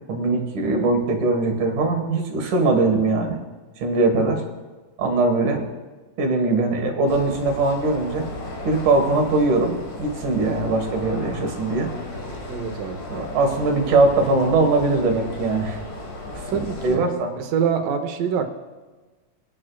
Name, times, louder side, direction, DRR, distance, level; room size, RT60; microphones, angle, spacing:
voice 1, 0.1-3.4 3.8-4.4 5.0-5.7 6.2-8.3 8.6-11.9 13.1-15.8 16.3-16.4 16.8-17.3, right 3 dB, 70° right, 3 dB, 3.0 m, -21 dB
sound 1, 7.1-17.0, left 2 dB, 40° left, 1.4 m, -35 dB
voice 2, 12.5-13.0 16.5-17.0 17.4-18.5, right 7 dB, 90° right, 6 dB, 2.7 m, -25 dB
22.5 x 9.8 x 2.3 m, 1.3 s
omnidirectional pair, 3.8 m